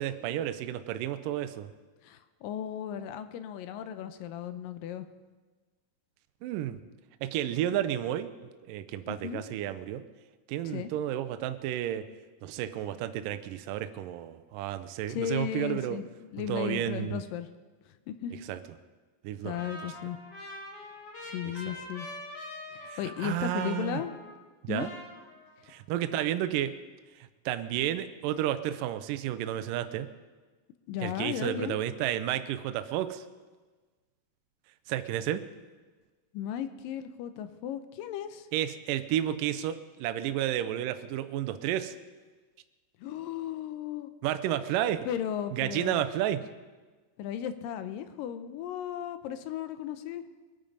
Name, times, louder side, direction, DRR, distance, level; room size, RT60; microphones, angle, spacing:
voice 1, 0.0-1.7 6.4-6.8 7.2-8.3 8.7-10.0 10.5-12.1 12.4-16.0 16.4-17.2 18.5-18.6 19.2-19.9 21.4-21.5 22.9-24.0 24.6-24.9 25.7-26.7 27.2-30.1 31.0-33.2 34.9-35.4 38.5-42.0 44.2-45.1 45.5-46.4, right 12 dB, 75° right, 10 dB, 2.2 m, -31 dB
voice 2, 2.0-5.1 9.1-9.4 10.6-10.9 15.1-17.5 17.9-18.3 19.4-20.2 21.2-22.1 22.7-24.1 24.7-24.9 30.9-31.8 36.3-38.5 43.0-44.1 45.1-46.0 47.2-50.2, left 10 dB, 80° left, 11 dB, 2.4 m, -35 dB
Trumpet, 19.5-24.5 24.7-25.7, left 1 dB, 45° left, 2.6 m, -44 dB
23.0 x 9.1 x 5.3 m, 1.3 s
omnidirectional pair, 4.1 m